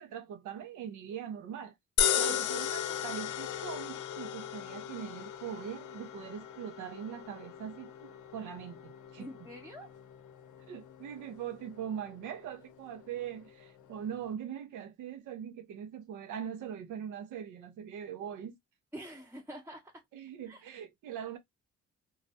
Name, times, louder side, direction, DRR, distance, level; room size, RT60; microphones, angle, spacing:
voice 1, 0.0-1.7 2.2-9.3 10.7-18.6 20.1-21.4, right 9 dB, 85° right, 0.6 m, -41 dB
sound 1, 2.0-14.3, left 10 dB, 80° left, 0.5 m, -37 dB
voice 2, 2.2-2.7 9.2-10.0 18.9-20.0 20.5-20.7, equal, 5° right, 0.7 m, -46 dB
2.4 x 2.0 x 2.6 m
cardioid pair, 75°, 30 cm